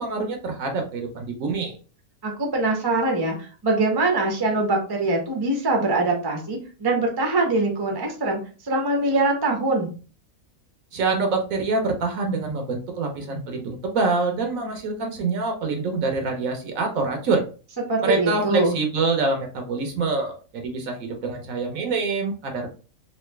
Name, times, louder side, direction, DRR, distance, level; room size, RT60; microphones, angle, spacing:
voice 1, 0.0-1.8 10.9-17.4 18.0-22.7, right 3 dB, 65° right, 4 dB, 1.1 m, -25 dB
voice 2, 2.2-9.9 17.9-18.7, right 2 dB, 25° right, 2 dB, 0.6 m, -23 dB
3.1 x 2.6 x 3.2 m, 0.36 s
omnidirectional pair, 1.6 m